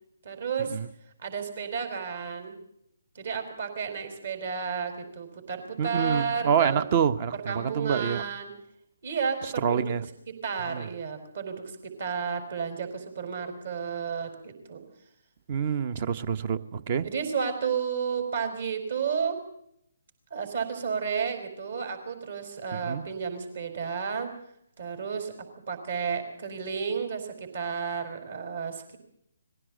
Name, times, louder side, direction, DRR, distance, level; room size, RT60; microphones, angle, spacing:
voice 1, 0.2-0.8 1.2-2.6 3.1-6.9 7.5-8.5 9.0-9.8 10.4-14.8 17.0-19.4 20.3-24.3 24.8-25.3 25.7-29.0, right 6 dB, 50° right, 6 dB, 4.4 m, -32 dB
voice 2, 5.8-8.2 9.4-10.1 10.6-10.9 15.5-17.1 22.7-23.0, right 7 dB, 35° right, 16 dB, 1.0 m, -27 dB
21.0 x 16.0 x 7.8 m, 0.74 s
figure-of-eight pair, 140°, 0 cm